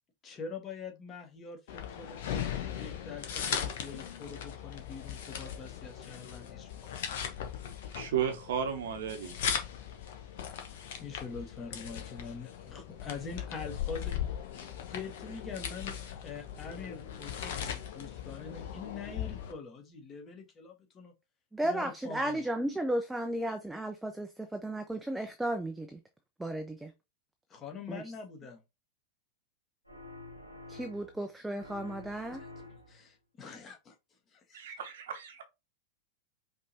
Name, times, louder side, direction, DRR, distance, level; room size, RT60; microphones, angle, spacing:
voice 1, 0.2-2.4 2.7-6.7 11.0-14.2 14.7-21.1 21.6-22.5 27.5-28.6 32.3-33.9 34.3-34.6, left 5 dB, 25° left, 1.4 m, -44 dB
sound 1, 1.7-19.5, left 9 dB, 55° left, 0.9 m, -39 dB
voice 2, 7.9-9.4 34.5-35.4, right 8 dB, 60° right, 0.9 m, -34 dB
voice 3, 21.5-26.0 26.4-26.9 27.9-28.0 30.7-32.4, right 1 dB, 5° right, 0.6 m, -34 dB
sound 2, 29.8-31.3 31.6-33.1, left 2 dB, 90° right, 0.8 m, -49 dB
5.2 x 3.1 x 2.7 m
figure-of-eight pair, 90°, 0 cm